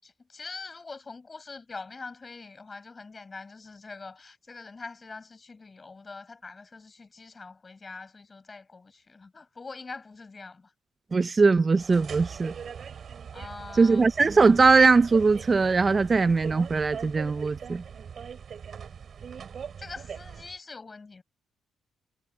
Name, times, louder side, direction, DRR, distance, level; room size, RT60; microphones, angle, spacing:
voice 1, 0.0-10.7 13.3-14.1 19.8-21.2, left 4 dB, 30° left, 5.9 m, -43 dB
voice 2, 11.1-12.5 13.7-17.8, right 4 dB, 30° right, 0.6 m, -21 dB
sound 1, 11.7-20.6, right 7 dB, 55° right, 3.8 m, -41 dB
cardioid pair, 90°, 0 cm